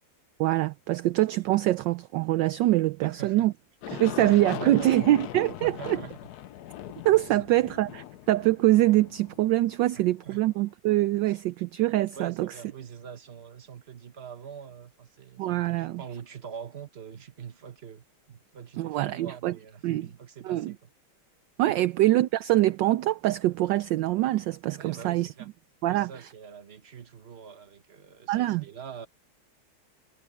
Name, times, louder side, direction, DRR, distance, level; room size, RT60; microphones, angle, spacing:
voice 1, 0.4-3.5 3.9-6.0 7.0-12.5 15.4-16.0 18.8-19.5 19.8-20.1 20.4-20.7 21.6-25.3 25.8-26.1 28.3-28.6, right 16 dB, 75° right, 1.1 m, -24 dB
voice 2, 3.0-3.5 3.9-4.9 5.6-6.2 7.2-7.4 9.9-10.4 11.3-11.4 12.1-20.9 21.7-21.9 24.7-25.5 25.9-29.1, right 7 dB, 35° right, 1.4 m, -44 dB
Aircraft, 3.8-10.5, left 13 dB, 70° left, 1.0 m, -40 dB
omnidirectional pair, 2.3 m